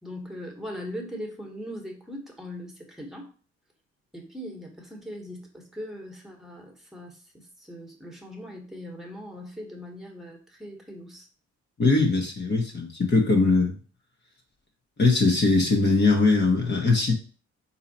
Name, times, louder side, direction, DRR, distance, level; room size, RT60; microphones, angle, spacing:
voice 1, 0.0-3.3 4.1-11.3, equal, ahead, 1 dB, 1.4 m, -40 dB
voice 2, 11.8-13.8 15.0-17.1, left 3 dB, 35° left, 1 dB, 1.1 m, -21 dB
4.0 x 2.8 x 4.2 m, 0.38 s
cardioid pair, 90°, 30 cm